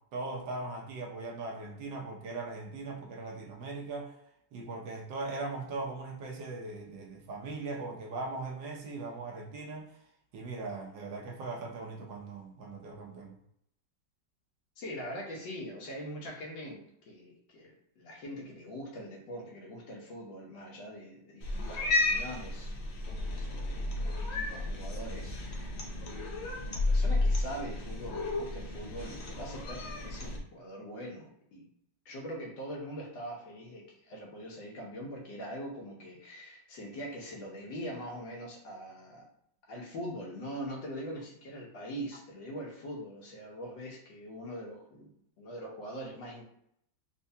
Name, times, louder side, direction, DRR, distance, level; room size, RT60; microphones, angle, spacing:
voice 1, 0.1-4.2 4.5-10.0 10.3-13.4, right 3 dB, 75° right, 1.3 m, -39 dB
voice 2, 14.8-22.7 23.2-25.8 26.3-31.6 32.0-39.3 39.7-46.4, equal, 70° left, 1.5 m, -43 dB
Cat, 21.4-30.4, left 2 dB, 85° left, 0.5 m, -32 dB
4.4 x 2.2 x 2.7 m
omnidirectional pair, 2.1 m